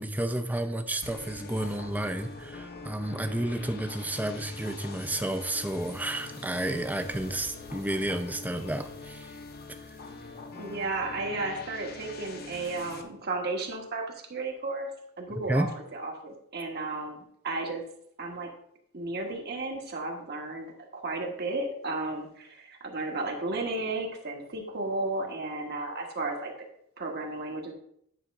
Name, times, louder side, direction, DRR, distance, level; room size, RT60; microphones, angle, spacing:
voice 1, 0.0-9.3 15.5-15.7, right 1 dB, 10° right, 8 dB, 0.5 m, -31 dB
sound 1, 1.0-13.0, left 3 dB, 45° left, 0.8 m, -44 dB
voice 2, 10.5-14.0 14.3-14.9 15.2-17.8 18.2-18.5 18.9-26.5 27.0-27.7, right 2 dB, 50° right, 1 dB, 1.4 m, -33 dB
9.9 x 3.6 x 5.3 m, 0.71 s
head